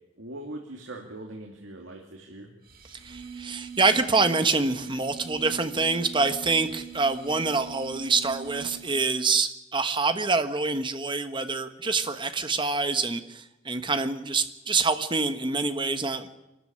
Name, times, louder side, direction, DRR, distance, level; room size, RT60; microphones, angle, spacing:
voice 1, 0.2-2.5, right 1 dB, 85° right, 1 dB, 2.5 m, -41 dB
sound 1, 2.7-9.2, right 7 dB, 50° right, 2.3 m, -42 dB
voice 2, 2.9-16.3, right 4 dB, 25° right, 9 dB, 1.3 m, -26 dB
25.5 x 13.0 x 8.8 m, 0.99 s
head